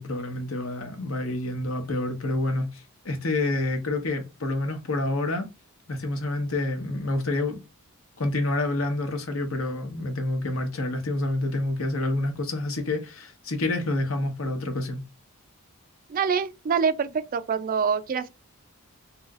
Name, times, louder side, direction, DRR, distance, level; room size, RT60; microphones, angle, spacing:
voice 1, 0.0-5.5 5.9-7.6 8.2-15.0, left 2 dB, 70° left, 1.0 m, -28 dB
voice 2, 16.1-18.3, right 6 dB, 40° right, 0.3 m, -25 dB
3.2 x 2.9 x 2.3 m
head